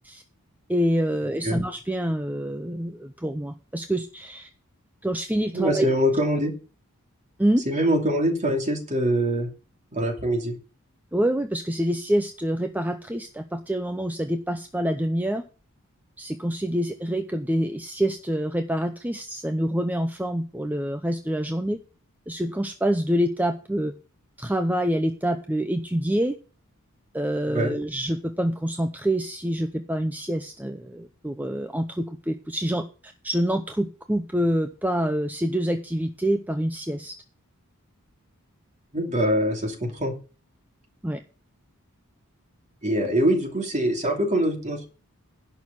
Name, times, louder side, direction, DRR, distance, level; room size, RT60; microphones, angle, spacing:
voice 1, 0.7-4.5 5.0-5.9 7.4-7.6 11.1-15.4 16.2-21.8 22.3-23.9 24.4-26.4 27.1-37.1 41.0-41.2, equal, 10° right, 7 dB, 0.6 m, -26 dB
voice 2, 5.5-6.5 7.7-9.5 9.9-10.5 27.5-27.8 38.9-40.1 42.8-44.9, equal, 35° right, 4 dB, 2.5 m, -23 dB
11.0 x 6.2 x 7.1 m, 0.36 s
head